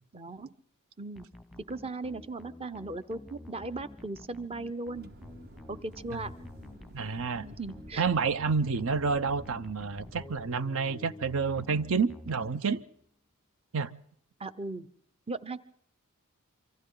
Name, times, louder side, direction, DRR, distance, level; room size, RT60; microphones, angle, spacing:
voice 1, 0.1-0.5 1.0-1.3 1.7-5.1 5.7-6.3 7.4-8.0 14.4-14.9 15.3-15.6, right 2 dB, 25° right, 0.8 m, -37 dB
sound 1, 1.2-13.0, left 1 dB, ahead, 0.9 m, -49 dB
sound 2, 4.9-10.5, right 1 dB, 45° right, 1.1 m, -50 dB
voice 2, 6.9-7.5 8.0-12.8 13.7-13.9, right 5 dB, 70° right, 0.8 m, -29 dB
27.0 x 24.5 x 3.9 m
head